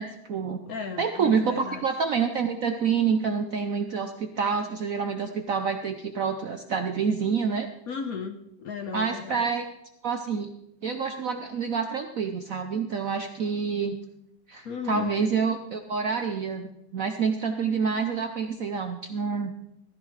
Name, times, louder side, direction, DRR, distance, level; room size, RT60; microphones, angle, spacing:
voice 1, 0.0-0.6 1.0-7.7 8.9-9.7 10.0-10.5 10.8-14.0 14.5-19.5, right 6 dB, 65° right, 6 dB, 0.8 m, -27 dB
voice 2, 0.7-1.9 7.9-9.5 14.6-15.1, left 5 dB, 60° left, 7 dB, 1.0 m, -35 dB
15.5 x 13.5 x 3.2 m, 0.83 s
omnidirectional pair, 2.2 m